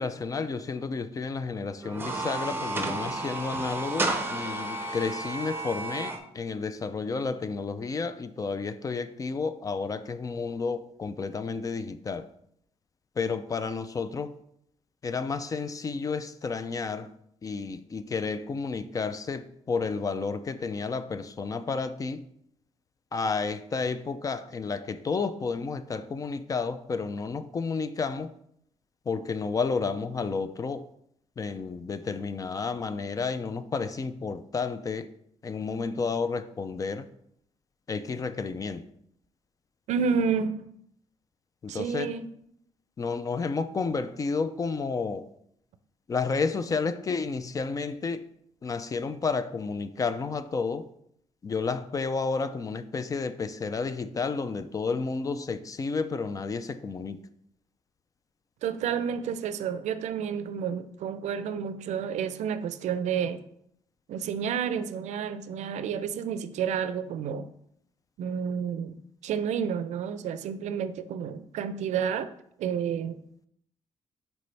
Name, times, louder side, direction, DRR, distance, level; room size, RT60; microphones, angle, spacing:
voice 1, 0.0-12.3 13.2-14.4 15.0-17.1 17.4-22.2 23.1-28.3 29.1-30.9 31.4-35.1 35.4-37.1 37.9-38.9 41.6-42.1 43.0-45.3 46.1-48.3 48.6-50.9 51.4-57.2, left 4 dB, 30° left, 0.3 m, -31 dB
sound 1, 1.8-6.2, right 2 dB, 20° right, 0.7 m, -32 dB
voice 2, 39.9-40.6 41.7-42.3 58.6-63.4 64.1-67.5 68.2-69.0 69.2-72.3 72.6-73.2, right 7 dB, 80° right, 0.4 m, -30 dB
6.6 x 4.5 x 3.3 m
cardioid pair, 120°, 12 cm